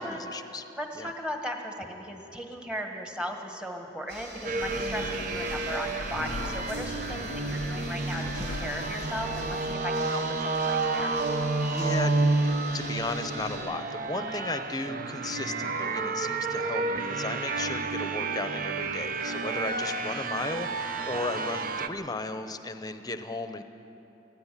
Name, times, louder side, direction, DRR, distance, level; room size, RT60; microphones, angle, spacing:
voice 1, 0.0-0.6 1.0-1.1 11.7-23.6, left 2 dB, 20° left, 9 dB, 0.8 m, -35 dB
voice 2, 0.7-11.1 20.0-20.1, equal, 5° right, 3 dB, 1.6 m, -37 dB
sound 1, 4.1-13.6, right 1 dB, 65° right, 6.2 m, -43 dB
sound 2, 4.4-21.9, right 3 dB, 50° right, 0.9 m, -30 dB
sound 3, 4.6-9.8, left 4 dB, 80° left, 0.5 m, -40 dB
18.0 x 14.5 x 10.0 m, 3.0 s
head